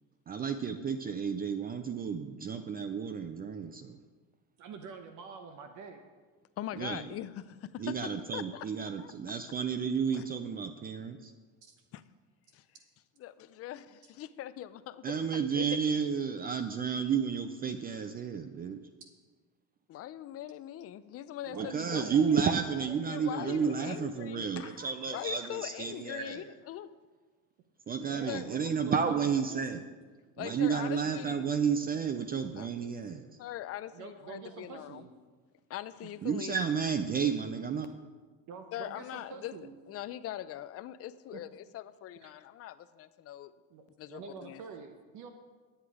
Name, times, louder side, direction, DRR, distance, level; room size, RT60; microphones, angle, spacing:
voice 1, 0.3-4.0 6.8-7.0 7.8-11.3 15.0-18.8 21.5-26.4 27.9-29.8 30.4-33.3 36.2-37.9, right 6 dB, 25° right, 9 dB, 0.5 m, -31 dB
voice 2, 4.6-6.0 11.6-11.7 21.4-24.0 24.6-25.5 26.3-26.5 28.1-29.9 30.4-31.2 33.9-35.1 36.0-36.1 38.5-39.7 41.3-41.4 42.2-42.3 43.7-43.8 44.1-45.3, right 5 dB, 55° right, 6 dB, 1.0 m, -47 dB
voice 3, 6.6-7.9 8.3-8.7 9.0-9.1 10.1-10.2 11.9-12.0 12.5-12.6 13.2-15.7 19.9-22.1 22.3-22.4 23.1-24.8 25.1-26.9 28.3-28.5 30.4-31.5 32.5-32.7 33.4-35.1 35.7-36.7 38.7-39.6 39.9-43.5 44.0-44.6, left 12 dB, 45° left, 14 dB, 0.5 m, -42 dB
10.0 x 8.0 x 4.8 m, 1.4 s
cardioid pair, 120°, 35 cm